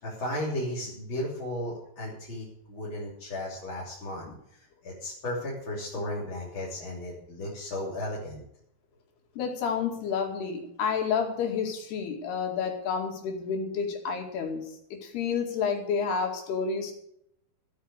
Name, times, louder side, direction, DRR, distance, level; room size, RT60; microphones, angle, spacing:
voice 1, 0.0-8.4, left 1 dB, 30° left, -6 dB, 3.6 m, -35 dB
voice 2, 9.4-14.6 14.9-16.9, left 6 dB, 85° left, 3 dB, 4.4 m, -30 dB
14.0 x 9.4 x 6.3 m, 0.75 s
omnidirectional pair, 4.5 m